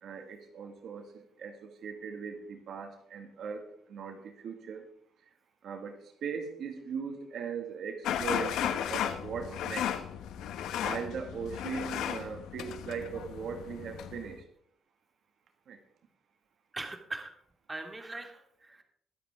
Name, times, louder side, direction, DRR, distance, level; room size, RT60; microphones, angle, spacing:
voice 1, 0.0-4.8 5.6-10.0 10.8-14.4 15.7-15.8, right 6 dB, 70° right, 5 dB, 1.9 m, -39 dB
sound 1, 8.0-14.3, left 9 dB, 85° left, 1.1 m, -35 dB
voice 2, 16.7-17.3 17.7-18.8, right 2 dB, 20° right, 4 dB, 2.3 m, -41 dB
23.0 x 7.9 x 3.6 m, 0.68 s
cardioid pair, 90°, 0 cm